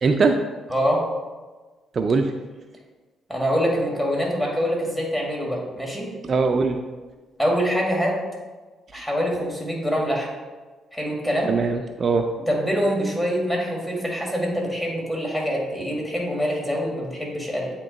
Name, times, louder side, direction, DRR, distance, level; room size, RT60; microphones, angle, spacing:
voice 1, 0.0-0.4 1.9-2.3 6.2-6.8 11.5-12.2, right 4 dB, 45° right, 5 dB, 0.4 m, -21 dB
voice 2, 0.7-1.1 3.3-6.1 7.4-8.2 8.9-10.3 10.9-11.5 12.5-17.7, equal, 10° left, -2 dB, 1.8 m, -24 dB
8.4 x 2.9 x 3.9 m, 1.3 s
cardioid pair, 90°, 0 cm